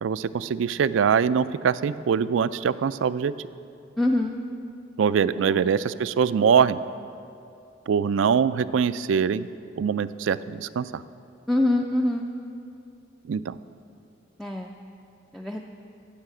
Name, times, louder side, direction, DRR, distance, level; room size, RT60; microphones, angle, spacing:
voice 1, 0.0-3.3 5.0-6.8 7.9-9.5 9.8-11.0 13.3-13.6, right 7 dB, 85° right, 15 dB, 0.4 m, -23 dB
voice 2, 4.0-4.3 11.5-12.2 14.4-14.7 15.3-15.6, left 1 dB, ahead, 1 dB, 0.4 m, -24 dB
14.5 x 5.7 x 7.7 m, 2.6 s
head